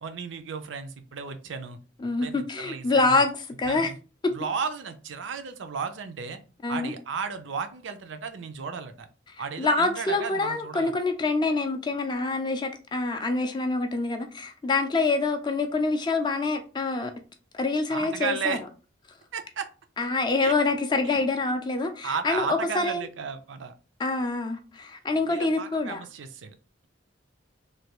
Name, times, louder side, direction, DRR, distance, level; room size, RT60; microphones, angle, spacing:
voice 1, 0.0-1.8 2.2-3.2 3.7-4.0 4.3-6.4 6.7-9.1 9.4-10.9 17.9-18.6 19.3-19.7 20.4-20.5 21.0-21.2 22.0-23.7 25.3-26.5, right 5 dB, 70° right, 0.5 m, -34 dB
voice 2, 2.0-3.9 4.2-4.3 6.6-6.9 9.6-17.1 17.5-18.6 20.0-23.0 24.0-26.0, left 3 dB, 25° left, 0.3 m, -26 dB
3.2 x 2.2 x 2.9 m
head